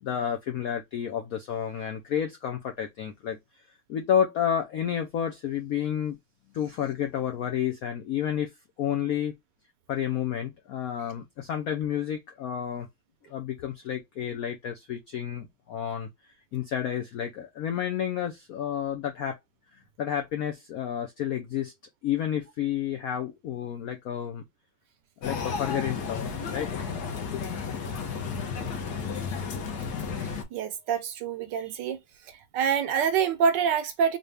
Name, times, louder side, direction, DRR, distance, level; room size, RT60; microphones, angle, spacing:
voice 1, 0.0-3.4 3.9-6.2 6.5-8.5 8.8-9.3 9.9-12.9 13.3-19.4 19.7-21.7 22.0-24.4 25.2-26.3 26.5-26.7 27.1-27.5, left 9 dB, 80° left, 0.8 m, -30 dB
sound 1, 25.2-30.4, left 5 dB, 60° left, 1.3 m, -33 dB
voice 2, 30.5-32.0 32.5-34.2, right 7 dB, 70° right, 1.2 m, -26 dB
4.0 x 2.3 x 3.3 m
omnidirectional pair, 2.2 m